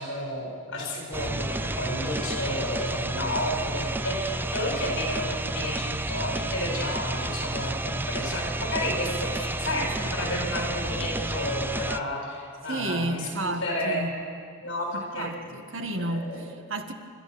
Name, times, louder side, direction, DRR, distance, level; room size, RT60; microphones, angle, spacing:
voice 1, 0.0-14.0 14.6-15.3 16.0-16.4, left 1 dB, 65° left, -1 dB, 7.4 m, -31 dB
sound 1, 1.1-12.0, right 2 dB, 10° right, 0.4 m, -31 dB
voice 2, 12.6-14.2 14.9-16.9, right 1 dB, 70° right, 5 dB, 1.7 m, -32 dB
30.0 x 13.5 x 7.0 m, 2.2 s
head